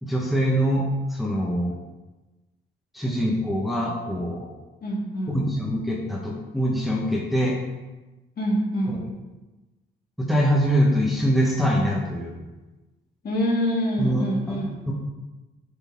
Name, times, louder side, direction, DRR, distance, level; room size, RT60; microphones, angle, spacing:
voice 1, 0.0-1.7 2.9-4.4 5.3-7.6 8.9-9.1 10.2-12.4 14.0-14.6 14.9-15.0, equal, ahead, -3 dB, 1.0 m, -24 dB
voice 2, 4.8-5.3 8.4-8.9 13.2-14.8, equal, 50° left, -3 dB, 2.1 m, -25 dB
8.1 x 4.1 x 3.5 m, 1.1 s
cardioid pair, 90°, 20 cm